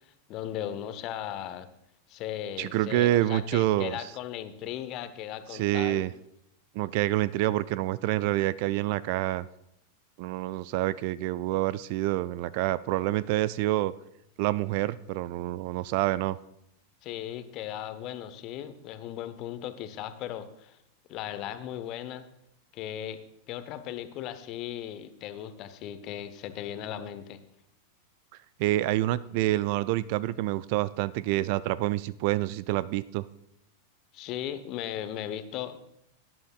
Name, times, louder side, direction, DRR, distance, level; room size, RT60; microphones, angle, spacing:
voice 1, 0.3-1.7 2.1-6.1 17.0-20.8 21.1-22.3 22.7-23.2 23.5-27.4 34.1-35.8, left 11 dB, 40° left, 11 dB, 0.9 m, -37 dB
voice 2, 2.6-4.0 5.5-6.1 6.8-9.5 10.2-13.9 14.4-16.4 28.6-33.3, right 16 dB, 45° right, 19 dB, 0.3 m, -27 dB
17.5 x 10.5 x 2.4 m, 0.78 s
figure-of-eight pair, 90°, 0 cm